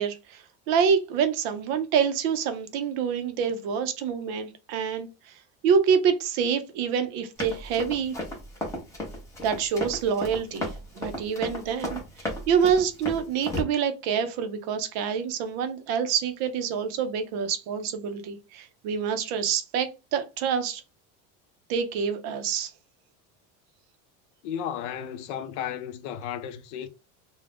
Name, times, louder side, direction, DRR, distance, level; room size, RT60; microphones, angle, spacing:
voice 1, 0.0-5.3 5.6-8.2 9.4-20.8 21.7-22.7, right 7 dB, 50° right, 0.5 m, -27 dB
Run, 7.4-13.6, left 1 dB, 10° left, 0.6 m, -34 dB
voice 2, 24.4-26.9, left 9 dB, 70° left, 0.5 m, -34 dB
2.4 x 2.0 x 3.3 m
cardioid pair, 170°, 36 cm